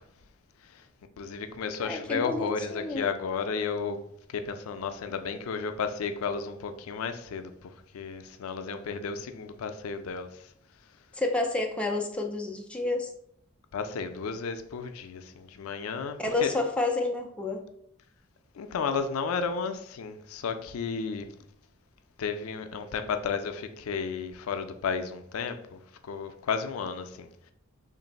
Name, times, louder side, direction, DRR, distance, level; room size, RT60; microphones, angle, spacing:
voice 1, 1.2-4.0 4.3-10.3 13.7-16.5 18.6-21.3 22.2-25.8 26.1-27.3, left 5 dB, 85° left, 0.4 m, -33 dB
voice 2, 1.8-3.1 11.1-13.1 16.2-17.6, left 2 dB, 5° left, 0.3 m, -29 dB
3.1 x 2.6 x 3.9 m
head